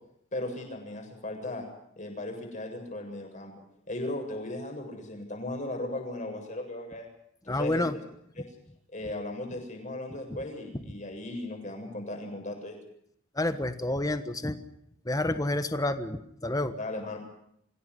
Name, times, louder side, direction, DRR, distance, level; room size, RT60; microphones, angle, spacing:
voice 1, 0.3-1.7 2.0-3.5 3.9-7.1 7.4-8.0 8.4-8.5 8.9-12.8 16.8-17.2, left 1 dB, 35° left, 3 dB, 7.6 m, -36 dB
voice 2, 7.5-7.9 13.3-14.6 15.0-16.7, left 1 dB, 20° left, 10 dB, 1.3 m, -29 dB
26.5 x 16.5 x 9.7 m, 0.72 s
head